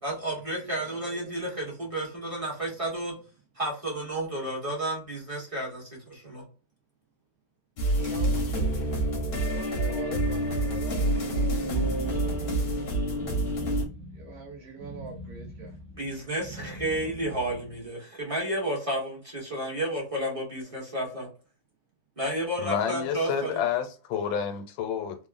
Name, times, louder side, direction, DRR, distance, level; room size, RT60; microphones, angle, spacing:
voice 1, 0.0-3.1 3.5-6.4 16.0-21.3 22.2-23.5, right 1 dB, 35° right, 0.6 m, -31 dB
voice 2, 0.8-1.3 7.9-9.1 9.4-11.6 12.0-12.6 12.9-13.1 14.1-16.0 16.6-17.4, right 3 dB, 75° right, 0.6 m, -44 dB
sound 1, 7.8-13.8, right 1 dB, 65° left, 0.6 m, -27 dB
sound 2, 11.6-17.9, right 1 dB, 60° right, 0.9 m, -43 dB
voice 3, 22.6-25.3, left 8 dB, 90° left, 1.4 m, -29 dB
3.6 x 2.0 x 2.3 m
omnidirectional pair, 2.1 m